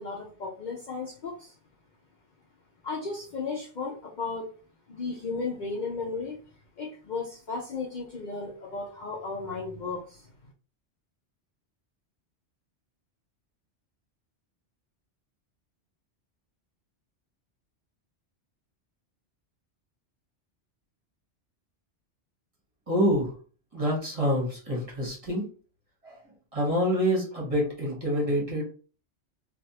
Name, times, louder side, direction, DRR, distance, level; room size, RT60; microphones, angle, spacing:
voice 1, 0.0-1.5 2.8-4.5 4.9-6.4 6.8-10.3, left 4 dB, 50° left, -2 dB, 0.6 m, -34 dB
voice 2, 22.9-23.3 23.7-25.5 26.0-26.2 26.5-28.6, equal, 30° right, -3 dB, 1.1 m, -26 dB
3.4 x 2.4 x 2.8 m, 0.39 s
omnidirectional pair, 1.2 m